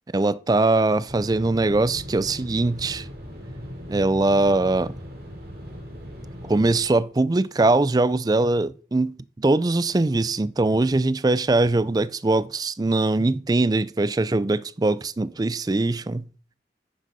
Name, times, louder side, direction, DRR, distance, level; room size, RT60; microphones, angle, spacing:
voice 1, 0.1-3.1 3.9-4.9 6.5-16.2, right 2 dB, 20° right, 0.4 m, -22 dB
sound 1, 1.1-6.8, equal, 60° right, 2.7 m, -38 dB
9.6 x 6.4 x 5.5 m
head